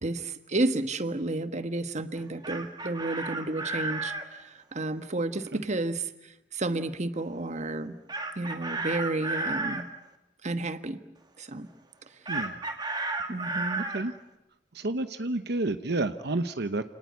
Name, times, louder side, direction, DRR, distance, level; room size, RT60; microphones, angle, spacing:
voice 1, 0.0-7.9 8.4-9.9 10.4-11.0 11.4-11.7 13.3-13.8, right 2 dB, 40° right, 10 dB, 1.3 m, -31 dB
Chicken rooster, 2.2-4.3 8.1-9.8 12.3-14.0, right 2 dB, 25° right, 2.5 m, -32 dB
voice 2, 12.3-12.6 13.8-14.1 14.7-16.9, right 2 dB, 65° right, 10 dB, 1.0 m, -30 dB
29.0 x 19.0 x 9.7 m, 0.92 s
head